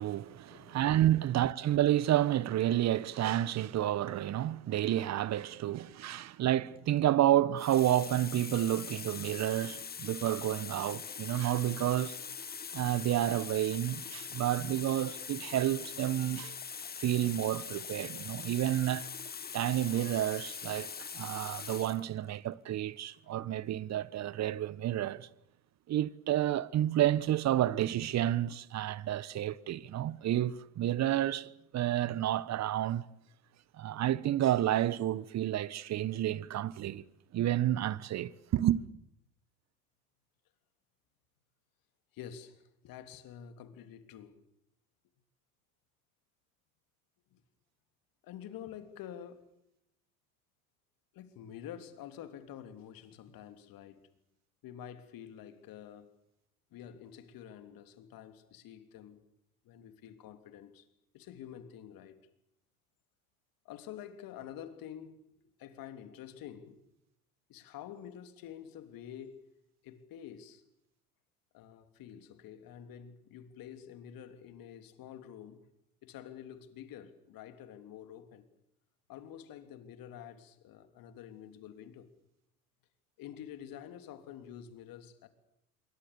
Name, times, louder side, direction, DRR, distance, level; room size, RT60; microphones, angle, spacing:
voice 1, 0.0-12.2 12.7-16.6 17.0-19.1 19.5-25.3 25.9-33.0 33.8-37.0 37.3-38.8, right 12 dB, 35° right, 1.2 m, -30 dB
Water tap faucet, 6.8-7.0 7.6-22.1 23.0-23.1, left 6 dB, 20° left, 1.4 m, -43 dB
voice 2, 42.1-44.4 47.3-47.4 48.2-49.4 51.1-54.1 54.6-56.1 56.7-59.2 59.6-60.9 61.1-62.2 63.6-65.2 65.6-66.8 67.5-69.5 69.8-70.6 71.5-75.7 76.0-78.5 79.1-82.1 83.2-85.3, left 9 dB, 50° left, 3.3 m, -48 dB
27.0 x 23.5 x 6.9 m
hypercardioid pair, 75°, 45 cm